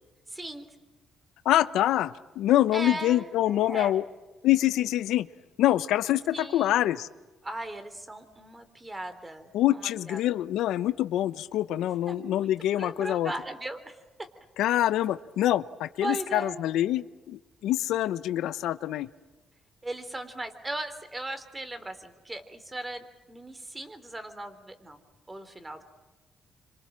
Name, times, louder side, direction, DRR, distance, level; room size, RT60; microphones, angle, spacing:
voice 1, 0.3-0.7 2.7-4.1 6.3-6.8 7.4-10.4 12.1-14.3 16.0-16.7 19.8-25.0 25.3-25.8, right 1 dB, 20° right, 9 dB, 3.5 m, -38 dB
voice 2, 1.4-4.0 4.4-5.3 5.6-7.1 9.5-13.3 14.6-19.1, left 13 dB, 85° left, 14 dB, 0.8 m, -25 dB
26.5 x 26.0 x 7.5 m, 1.2 s
cardioid pair, 90°, 0 cm